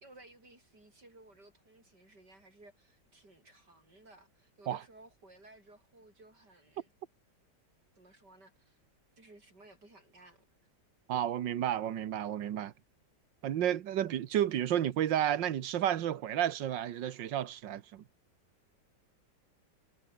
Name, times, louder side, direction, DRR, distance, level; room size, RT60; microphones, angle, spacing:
voice 1, 0.0-6.9 8.0-8.8 9.2-10.5 13.5-13.6, right 2 dB, 65° right, 8.8 m, -58 dB
voice 2, 11.1-12.7 13.4-18.0, right 11 dB, 85° right, 1.8 m, -31 dB
omnidirectional pair, 1.9 m